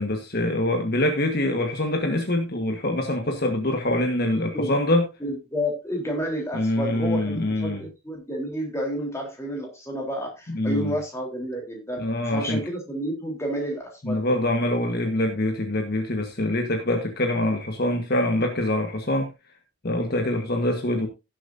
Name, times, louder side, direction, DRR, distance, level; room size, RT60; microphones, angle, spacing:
voice 1, 0.0-5.1 6.5-7.8 10.5-10.9 12.0-12.6 14.0-19.3 19.8-21.1, left 1 dB, 50° left, 1.5 m, -24 dB
voice 2, 5.2-14.2, equal, 15° left, 3.7 m, -30 dB
17.0 x 7.5 x 2.7 m
head